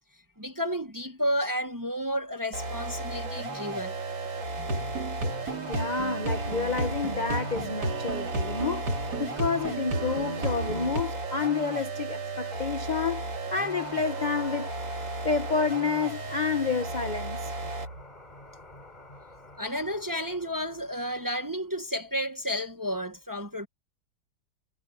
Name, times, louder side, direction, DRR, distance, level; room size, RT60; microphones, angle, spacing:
voice 1, 0.4-3.9 19.6-23.7, equal, 15° right, 0.8 m, -31 dB
sound 1, 2.5-18.0, right 3 dB, 90° right, 4.0 m, -35 dB
sound 2, 4.6-11.0, right 2 dB, 60° right, 3.4 m, -33 dB
voice 2, 5.7-14.7 15.2-17.5, left 5 dB, 55° left, 0.4 m, -29 dB
sound 3, 13.7-21.7, left 3 dB, 20° left, 3.6 m, -49 dB
omnidirectional pair, 2.0 m